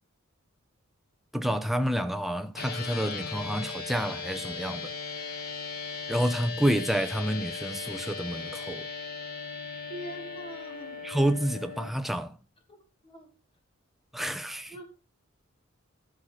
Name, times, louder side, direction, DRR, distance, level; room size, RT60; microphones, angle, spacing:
voice 1, 1.3-4.9 6.1-8.9 11.0-12.4 14.1-14.7, equal, ahead, 0.9 m, -29 dB
sound 1, 2.6-11.9, left 5 dB, 50° left, 1.9 m, -38 dB
voice 2, 9.9-11.1 12.7-13.4 14.7-14.8, right 1 dB, 25° left, 2.5 m, -43 dB
12.5 x 6.3 x 5.8 m
head